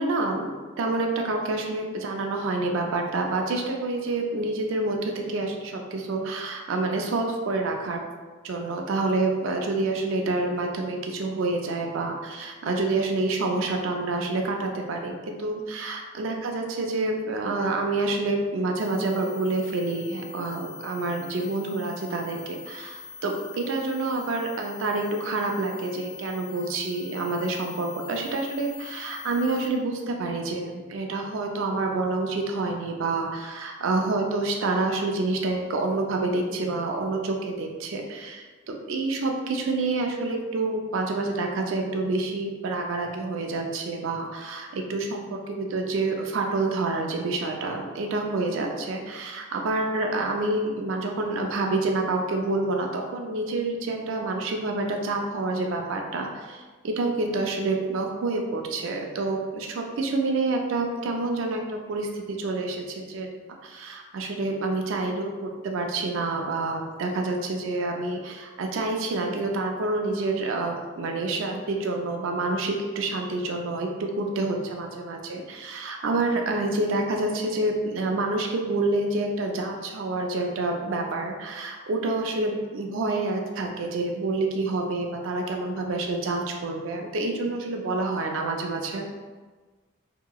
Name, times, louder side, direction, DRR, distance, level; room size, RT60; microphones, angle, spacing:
voice 1, 0.0-8.0 8.4-89.1, right 2 dB, 75° right, 2 dB, 0.4 m, -28 dB
sound 1, 18.8-29.7, left 5 dB, 25° left, 0.5 m, -43 dB
2.8 x 2.8 x 2.3 m, 1.4 s
head